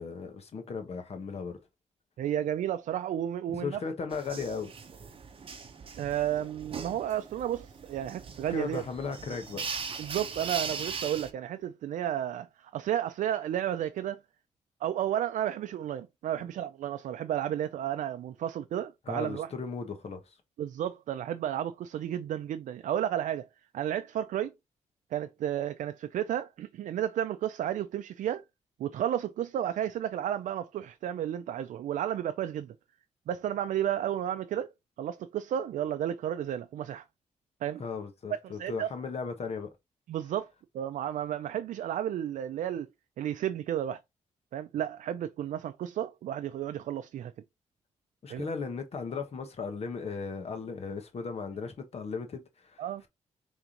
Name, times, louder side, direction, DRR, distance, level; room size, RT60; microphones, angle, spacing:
voice 1, 0.0-1.6 3.5-4.7 8.5-9.6 16.4-16.5 19.1-20.3 37.8-39.7 48.2-52.8, left 5 dB, 55° left, 1.2 m, -36 dB
voice 2, 2.2-3.8 6.0-8.8 10.0-14.2 14.8-19.5 20.6-23.5 23.7-24.5 25.1-28.4 28.8-32.7 33.3-34.7 35.0-37.0 37.6-37.8 38.6-38.9 40.1-42.9 43.2-44.0 44.5-47.3 48.3-48.5 52.8-53.0, right 10 dB, 85° right, 0.4 m, -32 dB
sound 1, 4.1-11.3, right 5 dB, 45° right, 0.9 m, -40 dB
5.1 x 3.5 x 2.9 m
cardioid pair, 110°, 13 cm